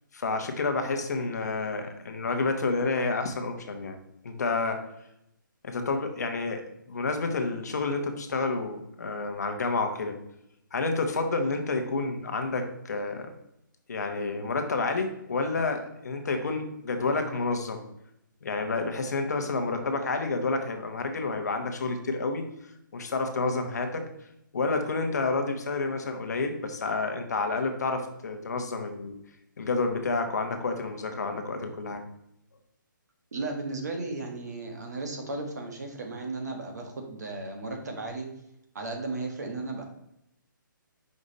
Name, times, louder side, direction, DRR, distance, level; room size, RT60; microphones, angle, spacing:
voice 1, 0.1-4.0 4.2-4.8 5.6-6.6 6.9-10.2 10.7-13.3 13.9-17.8 18.4-22.4 22.9-24.0 24.5-29.1 29.6-32.0, left 3 dB, 50° left, 5 dB, 1.0 m, -29 dB
voice 2, 33.3-38.3 38.7-39.8, right 2 dB, 50° right, 3 dB, 1.4 m, -35 dB
5.3 x 5.0 x 4.0 m, 0.81 s
hypercardioid pair, 175°, 11 cm